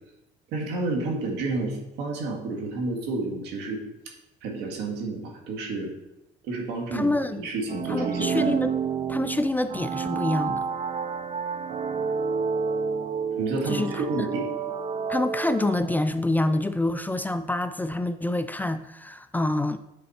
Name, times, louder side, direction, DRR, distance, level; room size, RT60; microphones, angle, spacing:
voice 1, 0.5-3.8 4.4-5.9 6.4-7.1 7.4-8.5 13.4-14.5, right 3 dB, 90° right, 1.9 m, -30 dB
voice 2, 6.9-7.5 7.9-8.7 9.1-10.6 13.7-14.0 15.1-19.8, left 2 dB, 10° left, 0.3 m, -26 dB
sound 1, 7.7-16.3, right 6 dB, 40° right, 0.6 m, -30 dB
9.4 x 4.2 x 4.3 m
cardioid pair, 110°, 17 cm